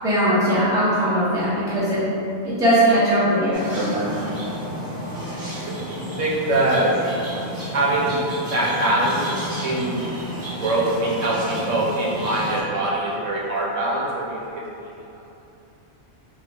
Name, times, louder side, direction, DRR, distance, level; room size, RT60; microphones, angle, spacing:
voice 1, 0.0-2.0 2.4-4.2, right 1 dB, 5° right, -10 dB, 0.6 m, -20 dB
sound 1, 3.5-12.6, equal, 25° right, 1.1 m, -32 dB
voice 2, 5.3-6.9 7.7-8.2 8.5-9.3 9.6-14.6, right 2 dB, 80° right, -6 dB, 1.0 m, -23 dB
3.0 x 2.4 x 3.3 m, 2.8 s
omnidirectional pair, 1.3 m